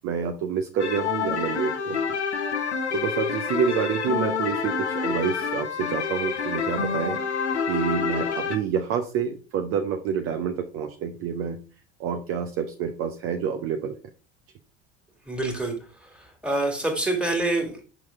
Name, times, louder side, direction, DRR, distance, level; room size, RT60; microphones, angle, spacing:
voice 1, 0.0-2.0 2.9-7.2 7.7-11.6 12.0-13.9, right 7 dB, 40° right, 6 dB, 0.8 m, -28 dB
sound 1, 0.8-8.6, left 6 dB, 80° left, 0.9 m, -28 dB
voice 2, 15.2-17.8, right 2 dB, 5° right, 3 dB, 2.2 m, -27 dB
6.1 x 6.0 x 3.5 m, 0.36 s
figure-of-eight pair, 70°, 34 cm